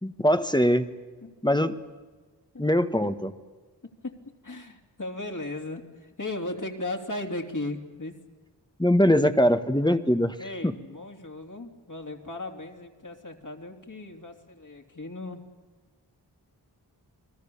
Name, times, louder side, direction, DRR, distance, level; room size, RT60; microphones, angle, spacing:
voice 1, 0.0-0.9 1.4-1.7 2.6-3.3 8.8-10.4 10.6-10.7, equal, 10° left, 9 dB, 1.3 m, -22 dB
voice 2, 1.2-1.6 2.5-2.7 3.0-3.1 3.8-4.2 4.4-8.1 9.2-9.3 10.4-15.4, left 2 dB, 45° left, 3 dB, 3.2 m, -37 dB
29.5 x 20.5 x 7.1 m, 1.3 s
wide cardioid pair, 65°, 41 cm